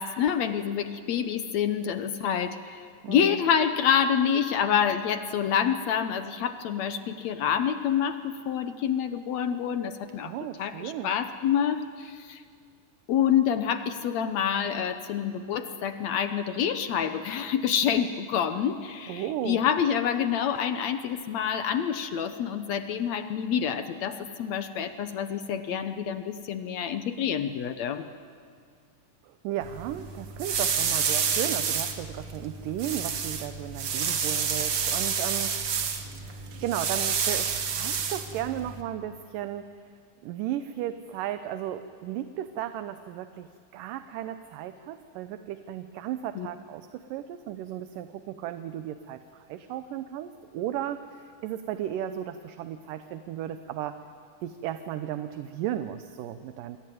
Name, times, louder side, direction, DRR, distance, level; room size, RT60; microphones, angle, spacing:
voice 1, 0.0-2.8 3.1-10.3 10.6-12.4 13.1-28.0 46.4-46.5, left 8 dB, 70° left, 9 dB, 1.8 m, -27 dB
voice 2, 3.0-3.4 10.2-11.1 19.1-19.7 29.2-35.5 36.2-39.7 40.2-54.0 54.4-56.8, right 11 dB, 75° right, 10 dB, 2.3 m, -35 dB
sound 1, 29.6-38.8, right 6 dB, 50° right, 2.0 m, -29 dB
27.5 x 22.5 x 9.3 m, 2.1 s
omnidirectional pair, 4.1 m